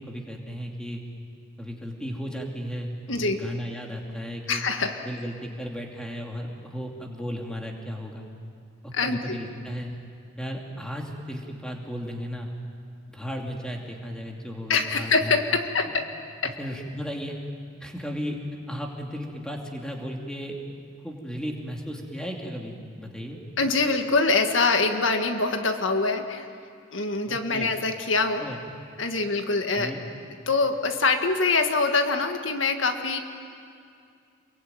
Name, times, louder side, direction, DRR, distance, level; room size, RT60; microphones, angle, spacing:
voice 1, 0.1-1.0 1.6-4.6 5.0-8.3 8.8-9.9 10.4-12.5 13.1-15.4 16.6-17.4 17.8-18.4 18.7-20.5 21.0-23.4 27.3-27.7 28.4-28.6 29.7-30.0, equal, 5° left, 0 dB, 2.7 m, -35 dB
voice 2, 3.1-3.4 4.5-5.0 8.9-9.4 14.7-16.1 16.4-16.6 23.6-26.5 26.9-28.5 29.0-29.9 30.5-33.2, left 3 dB, 75° left, 5 dB, 1.7 m, -24 dB
28.0 x 22.5 x 9.3 m, 2.4 s
head